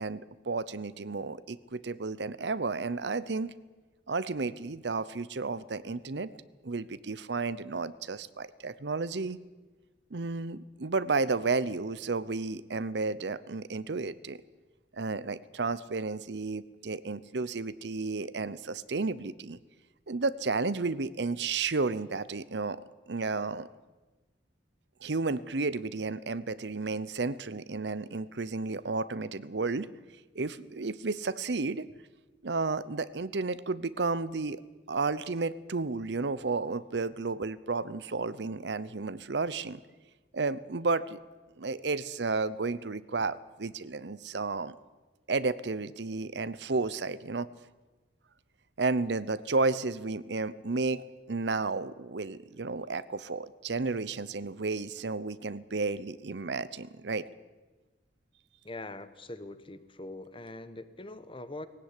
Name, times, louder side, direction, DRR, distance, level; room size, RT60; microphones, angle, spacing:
voice 1, 0.0-3.5 4.1-6.3 6.6-9.4 10.1-14.4 14.9-19.6 20.1-22.8 23.1-23.7 25.0-29.9 30.3-31.9 32.4-34.6 34.9-39.8 40.3-41.2 41.6-44.7 45.3-47.5 48.8-57.3, right 3 dB, 70° right, 16 dB, 0.8 m, -32 dB
voice 2, 58.6-61.7, left 2 dB, 30° left, 12 dB, 1.2 m, -43 dB
19.5 x 17.0 x 9.9 m, 1.2 s
head